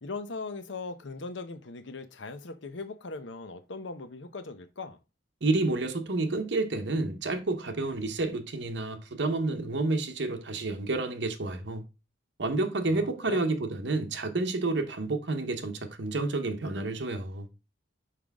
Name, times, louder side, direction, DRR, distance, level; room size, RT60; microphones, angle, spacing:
voice 1, 0.0-5.0 12.9-13.4, left 3 dB, 70° left, 0.7 m, -39 dB
voice 2, 5.4-11.8 12.4-17.5, right 2 dB, 65° right, 0.8 m, -30 dB
5.8 x 5.0 x 3.5 m
head